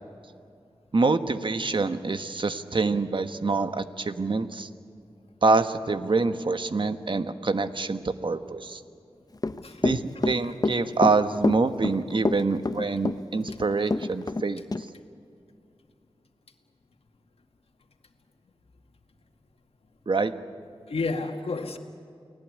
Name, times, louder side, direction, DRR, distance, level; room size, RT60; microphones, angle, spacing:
voice 1, 0.9-4.7 5.4-8.8 9.8-14.6 20.1-20.3, right 3 dB, 60° right, 9 dB, 1.4 m, -26 dB
Run / Walk footsteps, 9.4-14.4 14.7-14.8, left 3 dB, 40° left, 1.0 m, -27 dB
voice 2, 10.2-10.5 20.8-21.8, left 3 dB, 90° left, 4 dB, 2.1 m, -31 dB
30.0 x 19.5 x 9.6 m, 2.5 s
wide cardioid pair, 75°, 10 cm